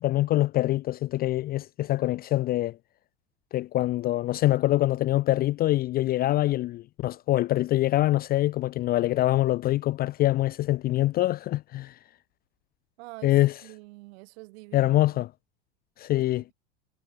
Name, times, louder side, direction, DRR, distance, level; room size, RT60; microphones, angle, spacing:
voice 1, 0.0-2.8 3.5-11.9 13.2-13.6 14.7-15.3 16.0-16.4, left 15 dB, 30° left, 0.4 m, -24 dB
voice 2, 13.0-13.3 13.6-15.2 16.1-16.5, right 24 dB, 65° right, 4.8 m, -46 dB
hypercardioid pair, 90°, 34 cm